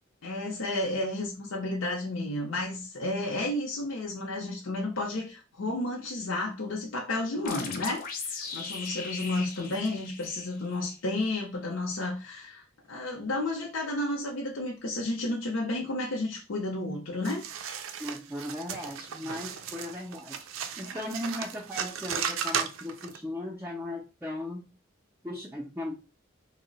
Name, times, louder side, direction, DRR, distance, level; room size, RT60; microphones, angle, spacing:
voice 1, 0.2-17.5, left 2 dB, 80° left, 0.6 m, -32 dB
sound 1, 7.5-10.9, left 4 dB, 45° left, 0.6 m, -39 dB
sound 2, 17.2-23.2, right 7 dB, 75° right, 0.4 m, -35 dB
voice 2, 18.0-20.4 20.8-24.7 25.2-25.9, left 1 dB, 10° right, 0.4 m, -37 dB
2.7 x 2.0 x 3.9 m
head